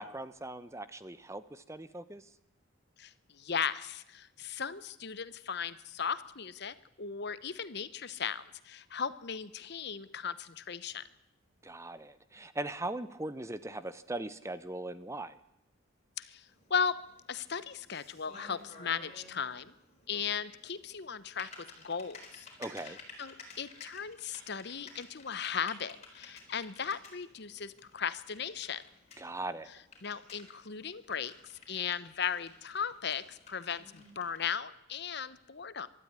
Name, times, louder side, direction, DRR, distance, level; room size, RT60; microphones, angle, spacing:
voice 1, 0.0-2.3 11.6-15.4 22.6-23.0 29.2-29.7, right 2 dB, 15° right, 13 dB, 0.8 m, -40 dB
voice 2, 3.0-11.0 16.2-16.4 16.7-17.0 17.3-19.7 20.1-22.5 23.2-28.8 30.0-31.3 31.7-35.9, left 7 dB, 55° left, 15 dB, 1.0 m, -37 dB
Typing, 16.5-34.5, left 3 dB, 35° left, 4.2 m, -54 dB
23.5 x 13.0 x 9.5 m, 0.85 s
head